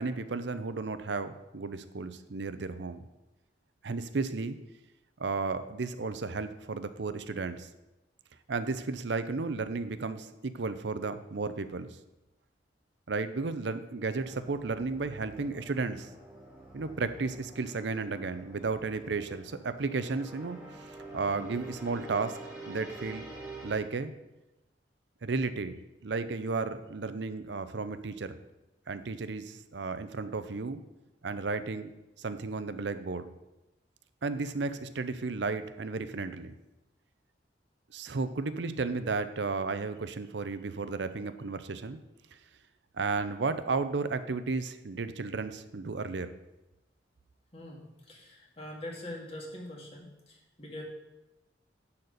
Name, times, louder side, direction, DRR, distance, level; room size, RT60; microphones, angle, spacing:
voice 1, 0.0-3.0 3.8-4.6 5.2-7.7 8.5-12.0 13.1-16.1 16.7-23.2 23.6-24.1 25.2-25.8 26.0-28.4 28.9-30.8 31.2-31.9 32.2-33.3 34.2-36.5 37.9-42.0 43.0-46.4, right 4 dB, 70° right, 11 dB, 0.6 m, -33 dB
sound 1, 14.2-23.8, right 2 dB, 5° right, 1.9 m, -47 dB
voice 2, 47.5-50.8, left 1 dB, 35° left, -2 dB, 2.0 m, -43 dB
10.5 x 4.3 x 6.5 m, 0.98 s
head